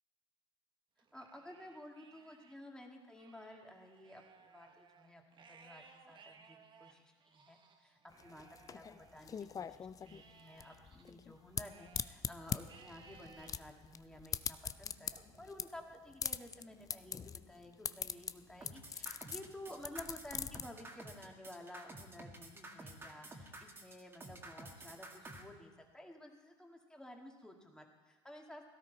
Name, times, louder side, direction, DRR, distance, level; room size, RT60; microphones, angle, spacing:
Livestock farm animals working animals, 1.0-2.6 3.0-9.6 10.0-12.2 12.7-13.6 14.1-14.5 15.1-16.2, right 5 dB, 35° right, 1.3 m, -62 dB
voice 1, 1.1-4.2 4.5-28.6, left 1 dB, 5° left, 1 dB, 2.2 m, -53 dB
sound 1, 8.1-20.6, left 7 dB, 25° left, 0.5 m, -42 dB
sound 2, 18.6-25.4, right 1 dB, 15° right, 2.0 m, -51 dB
17.5 x 13.0 x 4.2 m, 1.3 s
supercardioid pair, 95°, 14 cm